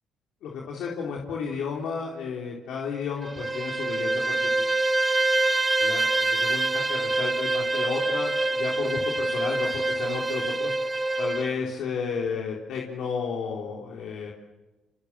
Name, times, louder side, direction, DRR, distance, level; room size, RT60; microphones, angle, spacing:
voice 1, 0.4-4.7 5.8-10.7 11.2-14.3, left 6 dB, 75° left, -2 dB, 3.9 m, -32 dB
Bowed string instrument, 3.2-11.5, right 2 dB, 25° right, 1.7 m, -25 dB
28.5 x 26.0 x 7.6 m, 1.1 s
cardioid pair, 80°, 0 cm